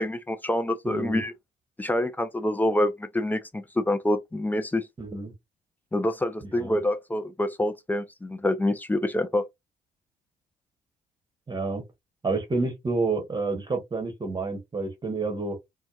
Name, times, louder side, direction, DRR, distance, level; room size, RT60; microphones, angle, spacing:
voice 1, 0.0-1.3 1.8-4.8 5.9-9.4, left 1 dB, 10° left, 0.4 m, -26 dB
voice 2, 0.8-1.2 5.0-5.3 6.5-6.8 11.5-11.8 12.2-15.6, right 3 dB, 20° right, 1.0 m, -29 dB
2.6 x 2.1 x 2.2 m
figure-of-eight pair, 45°, 20 cm